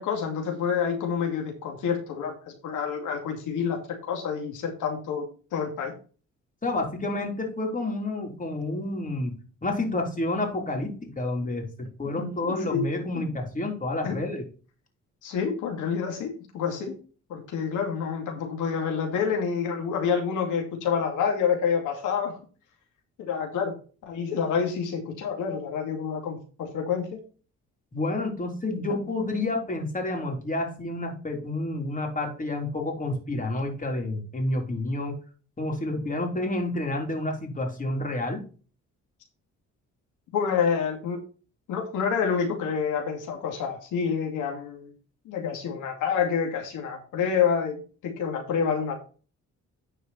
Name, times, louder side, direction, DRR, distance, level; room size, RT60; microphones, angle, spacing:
voice 1, 0.0-3.8 4.1-5.3 5.5-5.9 12.2-12.9 13.1-13.2 14.0-14.2 15.2-17.0 17.3-22.4 23.2-23.7 24.1-27.2 40.3-41.2 41.7-44.9 45.2-48.9, left 6 dB, 85° left, 2 dB, 2.4 m, -28 dB
voice 2, 6.6-9.4 9.6-14.4 27.9-35.2 35.6-38.4, left 2 dB, 25° left, 1 dB, 3.6 m, -29 dB
10.0 x 5.0 x 4.2 m, 0.37 s
cardioid pair, 90°, 30 cm